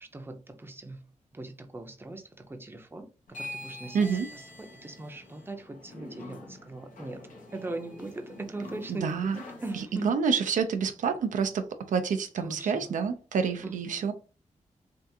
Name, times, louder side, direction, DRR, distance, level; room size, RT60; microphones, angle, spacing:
voice 1, 0.0-1.0 1.3-10.2 12.4-13.0 13.6-13.7, right 2 dB, 15° right, 0.6 m, -40 dB
sound 1, 3.3-9.8, left 1 dB, 90° left, 0.9 m, -45 dB
voice 2, 3.9-4.3 8.9-9.4 10.0-14.1, right 6 dB, 85° right, 0.4 m, -28 dB
3.5 x 2.4 x 2.7 m
cardioid pair, 70°, 13 cm